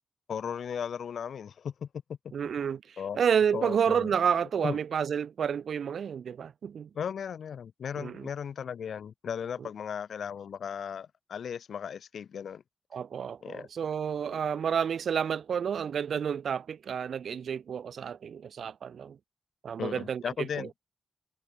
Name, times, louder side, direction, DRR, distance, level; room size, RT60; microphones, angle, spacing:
voice 1, 0.3-1.9 3.0-3.2 3.5-4.1 4.6-4.8 6.9-12.6 13.4-13.7 14.3-14.4 19.8-20.7, left 7 dB, 75° left, 2.5 m, -36 dB
voice 2, 2.3-6.9 8.0-8.3 9.6-9.7 12.9-19.2 19.6-20.7, right 7 dB, 75° right, 1.6 m, -30 dB
wide cardioid pair, 160°, 0 cm